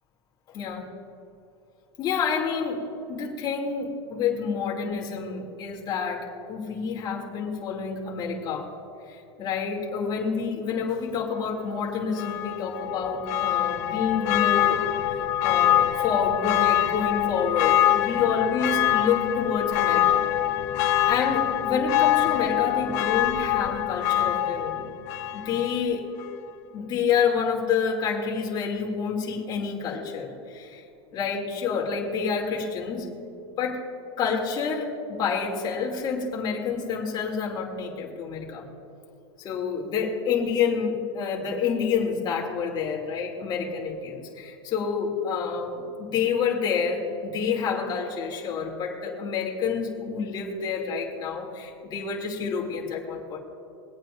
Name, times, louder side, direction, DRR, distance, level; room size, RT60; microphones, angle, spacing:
voice 1, 0.5-0.9 2.0-2.8 3.1-8.7 9.1-14.8 15.1-20.2 21.1-24.8 25.3-26.1 26.7-30.8 31.1-33.1 33.6-33.9 34.2-38.6 39.4-53.4, left 6 dB, 30° left, -1 dB, 2.7 m, -28 dB
Church bell, 12.1-25.8 26.2-26.3, left 12 dB, 50° left, 1.2 m, -24 dB
24.5 x 8.9 x 2.6 m, 2.7 s
supercardioid pair, 145°, 14 cm